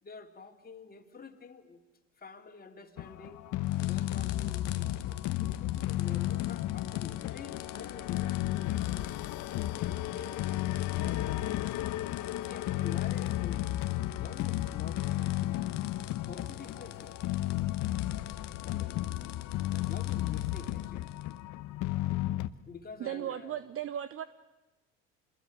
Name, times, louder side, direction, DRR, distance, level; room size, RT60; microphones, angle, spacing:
voice 1, 0.0-1.8 2.2-3.4 3.8-9.1 9.5-10.5 10.9-11.4 12.4-15.6 16.2-17.2 18.6-19.0 19.7-21.1 22.7-23.6, left 4 dB, 25° left, 5 dB, 3.0 m, -48 dB
sound 1, 3.0-22.5, left 15 dB, 55° left, 1.1 m, -33 dB
sound 2, 3.6-21.4, left 12 dB, 90° left, 1.2 m, -50 dB
voice 2, 23.0-24.2, right 11 dB, 40° right, 15 dB, 1.0 m, -36 dB
27.0 x 21.0 x 9.3 m, 1.0 s
hypercardioid pair, 75°, 36 cm